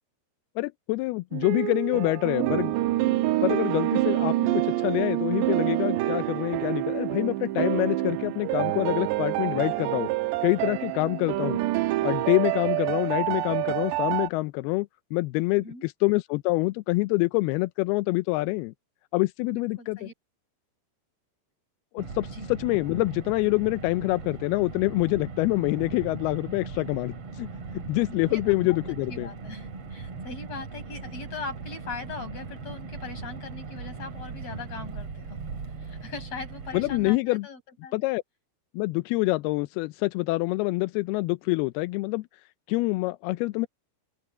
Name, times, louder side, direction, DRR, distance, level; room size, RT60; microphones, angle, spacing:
voice 1, 0.6-2.8 3.4-10.1 10.4-11.6 12.0-18.7 19.1-20.1 21.9-27.5 27.9-29.3 36.7-37.5 37.9-38.2 38.7-42.3 42.7-43.7, left 22 dB, 85° left, 2.3 m, -26 dB
sound 1, 1.3-14.3, right 17 dB, 80° right, 3.0 m, -27 dB
voice 2, 19.5-20.1 22.3-22.4 28.1-28.4 28.7-28.8 29.1-35.4 35.8-37.9, left 4 dB, 35° left, 8.5 m, -40 dB
Car, 22.0-37.2, right 4 dB, 40° right, 3.2 m, -39 dB
open air
omnidirectional pair, 5.0 m